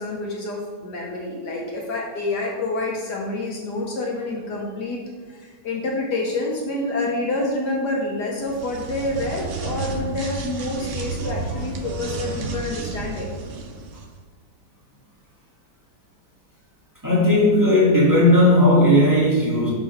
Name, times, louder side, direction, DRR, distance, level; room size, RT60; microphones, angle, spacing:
voice 1, 0.0-5.0 5.3-13.3, left 2 dB, 70° left, -1 dB, 1.6 m, -27 dB
sound 1, 8.4-14.1, right 3 dB, 75° right, 0.5 m, -31 dB
voice 2, 17.0-19.7, left 1 dB, 10° right, -8 dB, 2.2 m, -16 dB
6.1 x 4.7 x 5.8 m, 1.4 s
omnidirectional pair, 1.9 m